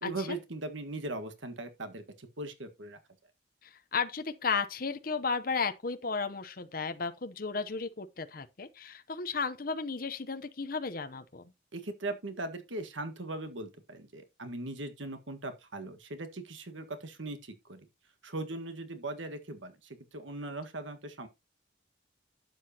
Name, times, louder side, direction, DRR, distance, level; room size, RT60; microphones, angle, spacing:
voice 1, 0.0-3.0 11.7-17.9 18.2-21.3, right 2 dB, 75° right, 1.6 m, -39 dB
voice 2, 3.6-11.4, left 5 dB, 45° left, 0.8 m, -34 dB
12.0 x 7.7 x 2.9 m
head